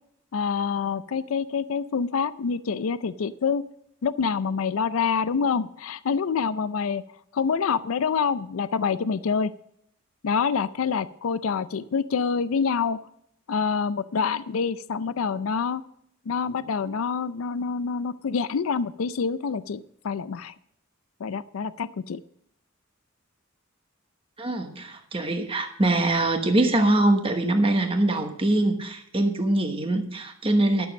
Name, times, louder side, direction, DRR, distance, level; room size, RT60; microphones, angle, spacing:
voice 1, 0.3-3.6 4.0-7.0 7.3-9.5 10.2-13.0 13.5-15.8 16.3-20.5 21.2-22.2, left 5 dB, 85° left, 14 dB, 0.4 m, -26 dB
voice 2, 24.4-30.9, right 1 dB, 25° right, 5 dB, 1.2 m, -23 dB
12.0 x 7.1 x 6.4 m, 0.72 s
head